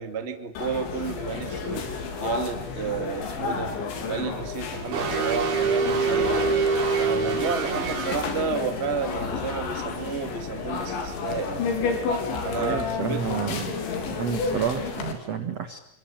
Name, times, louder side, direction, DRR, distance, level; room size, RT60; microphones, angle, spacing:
voice 1, 0.0-1.8 2.2-3.7 4.1-6.4 6.9-11.7 12.4-13.2, right 6 dB, 35° right, 7 dB, 1.0 m, -31 dB
sound 1, 0.6-15.1, left 5 dB, 65° left, 5.8 m, -31 dB
sound 2, 4.9-8.2, right 5 dB, 90° right, 8.5 m, -25 dB
voice 2, 12.6-13.8 14.1-15.8, right 7 dB, 70° right, 8 dB, 1.5 m, -30 dB
28.0 x 24.5 x 8.7 m, 0.66 s
omnidirectional pair, 5.8 m